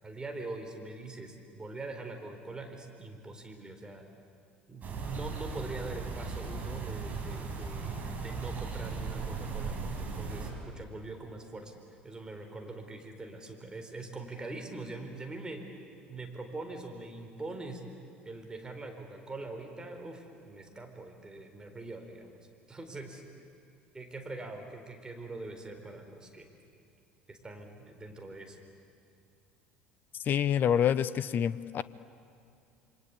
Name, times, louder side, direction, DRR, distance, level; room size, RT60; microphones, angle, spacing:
voice 1, 0.0-4.1 4.7-11.7 12.0-15.6 16.1-17.8 18.2-22.3 22.7-23.2 23.9-26.5 27.3-28.6, right 2 dB, 15° right, 4 dB, 4.3 m, -43 dB
sound 1, 4.8-10.5, right 4 dB, 35° right, 5.1 m, -37 dB
voice 2, 30.3-31.8, left 9 dB, 40° left, 18 dB, 0.7 m, -27 dB
27.5 x 25.0 x 8.4 m, 2.5 s
figure-of-eight pair, 65°, 5 cm